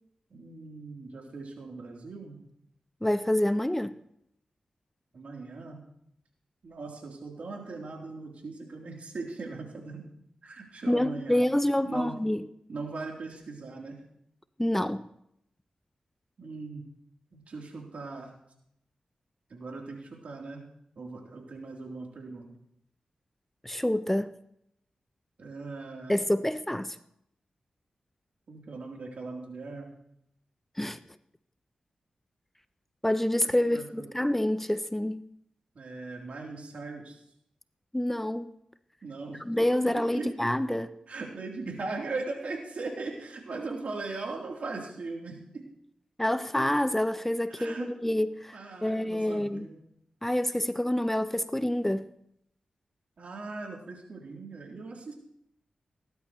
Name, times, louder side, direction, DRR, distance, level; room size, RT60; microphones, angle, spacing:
voice 1, 0.3-2.4 5.1-5.8 6.6-10.1 10.4-11.5 11.8-12.1 12.7-14.0 16.4-16.8 17.3-18.3 19.5-20.6 20.9-22.5 25.4-26.2 28.5-29.9 33.5-34.1 35.7-37.2 39.0-39.4 40.0-40.3 41.1-45.6 47.5-47.9 48.5-49.8 53.2-55.1, right 3 dB, 75° right, 3.4 m, -39 dB
voice 2, 3.0-4.0 10.9-12.4 14.6-15.1 23.6-24.3 26.1-27.0 30.8-31.0 33.0-35.2 37.9-38.5 39.5-40.9 46.2-49.7 50.2-52.1, left 1 dB, 10° left, 0.6 m, -27 dB
18.5 x 11.5 x 3.2 m
cardioid pair, 50°, 2 cm